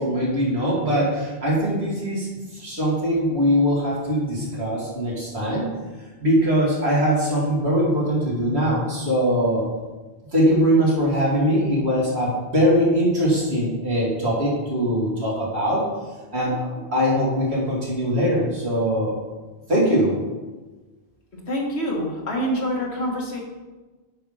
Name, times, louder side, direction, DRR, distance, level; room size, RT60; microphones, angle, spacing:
voice 1, 0.0-2.3 2.5-5.6 6.2-9.7 10.3-15.9 16.3-19.1 19.7-20.1, equal, 80° right, -5 dB, 2.8 m, -21 dB
voice 2, 21.3-23.4, equal, 85° left, -1 dB, 2.0 m, -26 dB
7.6 x 5.2 x 5.6 m, 1.2 s
omnidirectional pair, 1.1 m